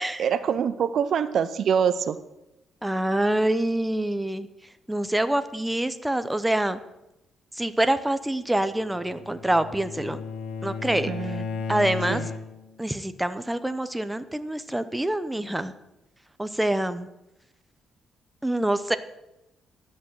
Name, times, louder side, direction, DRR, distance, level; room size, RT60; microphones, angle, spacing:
voice 1, 0.2-2.2 11.1-11.6 12.1-12.2, right 7 dB, 60° right, 14 dB, 0.6 m, -25 dB
voice 2, 2.8-4.5 4.9-6.8 7.6-10.2 10.6-11.3 11.7-12.2 12.8-15.7 16.4-17.1 18.4-19.0, right 1 dB, 10° right, 12 dB, 0.7 m, -26 dB
Bowed string instrument, 8.8-12.7, left 5 dB, 85° left, 1.4 m, -34 dB
11.0 x 6.3 x 7.5 m, 0.91 s
cardioid pair, 90°, 0 cm